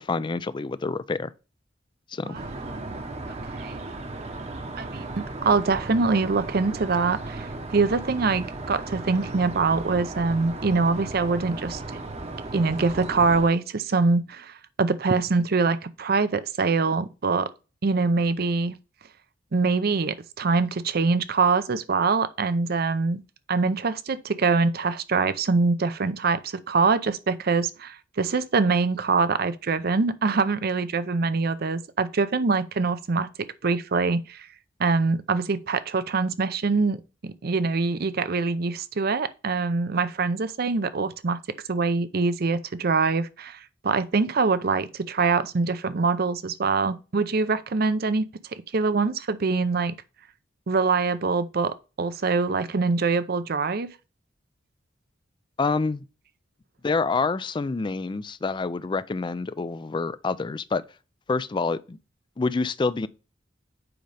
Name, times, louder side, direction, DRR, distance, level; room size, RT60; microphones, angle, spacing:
voice 1, 0.0-1.3 2.1-2.4 55.6-56.0 56.8-60.8 61.3-62.0 62.4-63.1, left 4 dB, 25° left, 0.4 m, -27 dB
sound 1, 2.3-13.5, right 2 dB, 35° right, 0.9 m, -36 dB
voice 2, 2.7-3.8 4.8-7.5 7.7-11.8 12.5-17.5 17.8-18.8 19.5-23.2 23.5-34.5 34.8-41.4 41.7-48.2 48.5-50.0 50.7-53.9, right 4 dB, 55° right, 0.6 m, -24 dB
7.8 x 5.2 x 3.3 m
head